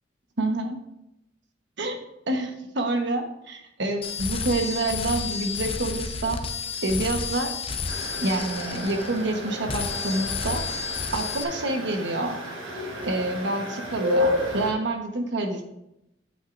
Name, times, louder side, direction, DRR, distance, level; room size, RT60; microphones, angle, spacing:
voice 1, 0.4-0.8 1.8-2.0 2.3-6.4 6.8-7.5 8.2-10.6 11.1-12.4 13.0-15.6, right 2 dB, 65° right, 4 dB, 1.2 m, -27 dB
sound 1, 4.0-9.4 9.7-11.4, left 5 dB, 30° left, 0.6 m, -31 dB
sound 2, 7.9-14.7, left 1 dB, 80° right, 1.5 m, -31 dB
9.0 x 8.0 x 2.6 m, 0.86 s
head